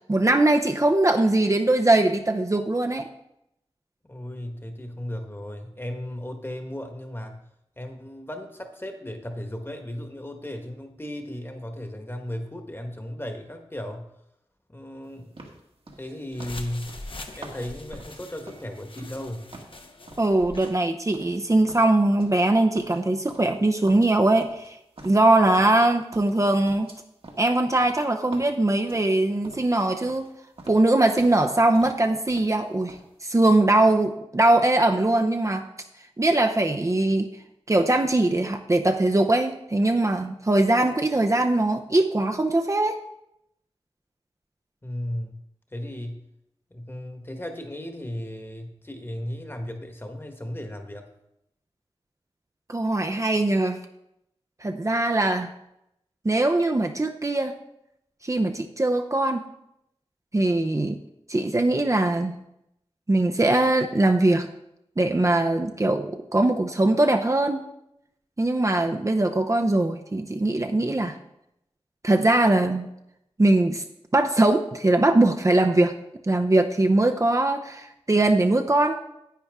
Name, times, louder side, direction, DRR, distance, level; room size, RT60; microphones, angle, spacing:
voice 1, 0.1-3.1 20.2-24.8 25.0-26.9 27.4-30.3 30.7-35.7 36.2-37.4 37.7-43.0 52.7-53.8 54.6-55.5 56.2-57.5 58.2-59.5 60.3-61.0 61.3-62.3 63.1-64.5 65.0-67.6 68.4-71.2 72.0-72.9 73.4-73.8 74.1-75.9 76.2-79.0, right 2 dB, 30° right, 4 dB, 0.7 m, -21 dB
voice 2, 4.0-7.4 7.8-14.1 14.7-15.4 16.0-17.0 17.4-19.5 44.8-45.4 45.7-46.3 46.7-51.1, left 1 dB, 20° left, 5 dB, 1.4 m, -35 dB
sound 1, 15.4-19.2 19.5-21.4 21.7-22.5 22.8-23.6 23.9-25.9 26.1-29.8 30.0-30.3 30.6-31.5 31.7-32.6 32.9-33.1, right 2 dB, 65° right, 1.7 m, -46 dB
sound 2, 16.3-20.8, left 2 dB, 55° left, 1.1 m, -43 dB
10.0 x 8.5 x 3.6 m, 0.81 s
wide cardioid pair, 55°, 10 cm